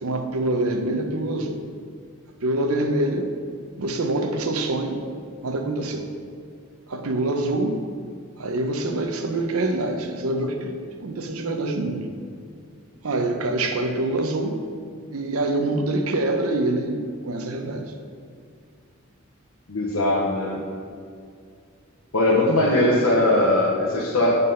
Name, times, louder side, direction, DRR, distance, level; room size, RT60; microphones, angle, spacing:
voice 1, 0.0-1.6 2.4-3.3 3.8-5.0 5.4-6.1 6.9-7.8 8.4-12.1 13.0-14.6 15.1-17.9 22.8-22.9, right 2 dB, 85° right, 5 dB, 0.7 m, -25 dB
voice 2, 19.7-20.6 22.1-24.3, left 1 dB, 80° left, -5 dB, 0.9 m, -20 dB
7.6 x 4.0 x 5.5 m, 2.2 s
head